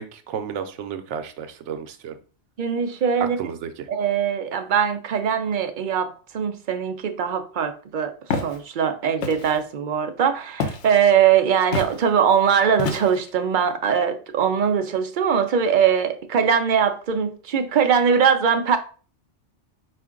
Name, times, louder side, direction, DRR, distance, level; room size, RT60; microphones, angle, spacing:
voice 1, 0.0-2.2 3.2-3.9, right 7 dB, 85° right, 0.9 m, -32 dB
voice 2, 2.6-3.4 3.9-8.1 8.4-18.8, right 7 dB, 60° right, 0.5 m, -21 dB
Walk footsteps, 8.3-8.6 9.2-9.6 10.6-10.9 11.7-12.0 12.8-13.3, left 4 dB, 80° left, 0.9 m, -27 dB
4.5 x 2.5 x 3.6 m
omnidirectional pair, 1.2 m